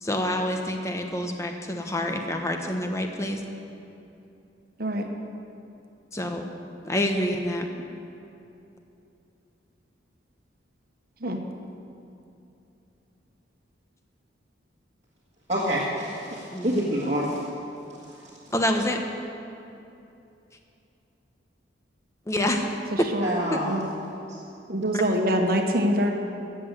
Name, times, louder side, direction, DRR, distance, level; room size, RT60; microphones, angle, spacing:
voice 1, 0.0-3.4 6.1-6.5 6.8-7.7 16.5-16.8 18.5-19.0 22.3-22.7 23.0-23.1 23.5-23.6 24.9-25.0, left 1 dB, 15° left, 4 dB, 1.0 m, -27 dB
voice 2, 15.5-17.3 18.1-18.2 23.2-23.7, equal, 35° right, -7 dB, 1.7 m, -27 dB
voice 3, 24.7-26.1, equal, 50° right, 3 dB, 1.3 m, -24 dB
14.5 x 7.9 x 8.2 m, 2.8 s
head